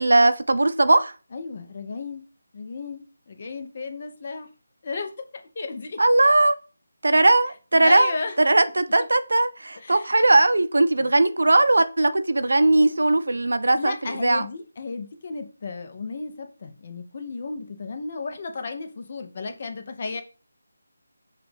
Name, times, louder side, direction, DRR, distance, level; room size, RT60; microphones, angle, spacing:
voice 1, 0.0-1.1 6.0-6.5 7.0-14.4, right 2 dB, 75° right, 0.5 m, -19 dB
voice 2, 1.3-2.2 2.5-4.5 4.8-5.1 5.5-6.0 7.8-8.4 9.8-10.2 11.0-11.1 13.7-20.2, left 4 dB, 40° left, 0.7 m, -34 dB
5.9 x 2.4 x 3.3 m
figure-of-eight pair, 165°, 0 cm